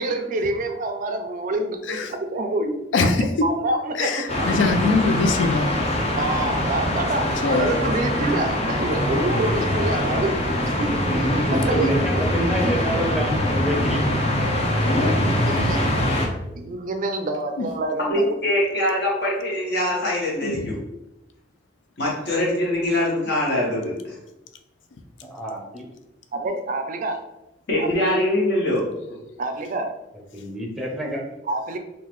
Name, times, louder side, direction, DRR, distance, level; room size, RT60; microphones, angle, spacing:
voice 1, 0.0-2.8 3.2-4.6 6.1-10.4 10.6-12.2 15.4-16.1 16.6-18.2 26.3-27.2 27.8-27.9 29.4-29.9 31.5-31.8, right 2 dB, 45° right, 6 dB, 0.4 m, -27 dB
voice 2, 2.9-3.2 4.0-5.7 7.4-7.7 17.6-17.7 20.4-20.6, left 3 dB, 80° left, 7 dB, 0.4 m, -22 dB
sound 1, 4.3-16.3, left 1 dB, 35° left, 0.6 m, -23 dB
voice 3, 10.9-14.2 25.3-25.9 30.3-31.3, equal, ahead, 0 dB, 0.6 m, -27 dB
voice 4, 18.1-20.8 22.0-24.1 27.7-28.9, left 1 dB, 65° left, -4 dB, 1.3 m, -23 dB
3.8 x 2.4 x 3.0 m, 0.93 s
head